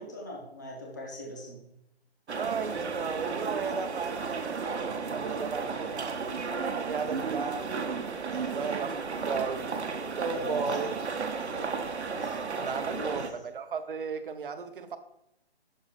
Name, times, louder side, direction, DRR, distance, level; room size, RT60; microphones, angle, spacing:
voice 1, 0.0-1.6 5.8-6.0 7.0-7.5 8.3-8.8 10.3-11.1 11.4-11.8 12.2-13.2, equal, 20° left, -1 dB, 0.4 m, -43 dB
sound 1, 2.3-13.3, right 5 dB, 85° right, 0.8 m, -33 dB
voice 2, 2.4-6.4 6.7-7.7 8.4-9.8 10.2-10.9 12.6-15.0, right 5 dB, 55° right, 9 dB, 0.7 m, -35 dB
6.3 x 3.1 x 5.4 m, 0.80 s
hypercardioid pair, 155°, 32 cm